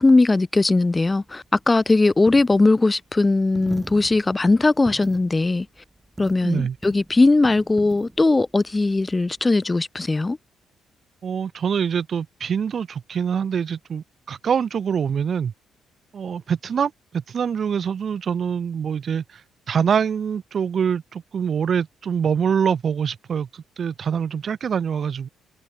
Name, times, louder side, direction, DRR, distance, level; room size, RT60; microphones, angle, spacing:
voice 1, 0.0-5.7 6.2-10.4, left 3 dB, 20° left, 1.5 m, -19 dB
Coin (dropping), 0.9-9.5, right 2 dB, 15° right, 6.9 m, -42 dB
voice 2, 6.4-6.8 11.2-15.5 16.1-19.4 19.7-25.3, right 7 dB, 50° right, 0.7 m, -24 dB
cardioid pair, 90°, 0 cm